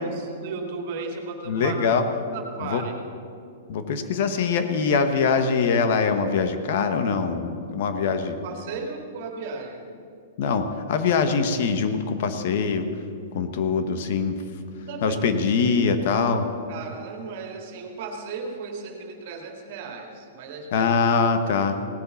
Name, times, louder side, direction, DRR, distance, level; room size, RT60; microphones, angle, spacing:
voice 1, 0.0-1.8 2.3-2.9 8.4-9.8 14.8-15.2 16.7-20.9, right 4 dB, 50° right, 3 dB, 2.3 m, -35 dB
voice 2, 1.5-2.0 2.6-2.8 3.7-8.4 10.4-12.9 13.3-14.4 15.0-16.5 20.7-21.8, left 5 dB, 55° left, 8 dB, 1.2 m, -23 dB
17.5 x 8.4 x 7.1 m, 2.4 s
hypercardioid pair, 155°, 0 cm